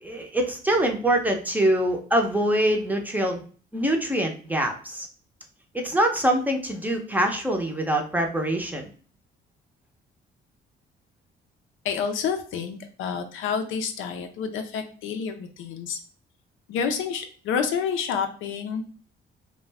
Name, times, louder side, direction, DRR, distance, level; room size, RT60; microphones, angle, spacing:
voice 1, 0.0-3.4 3.7-5.1 5.7-8.9, right 1 dB, 10° right, 2 dB, 0.6 m, -24 dB
voice 2, 11.8-16.0 16.7-19.0, left 6 dB, 85° left, 6 dB, 0.5 m, -29 dB
2.4 x 2.1 x 3.3 m, 0.42 s
cardioid pair, 90°, 20 cm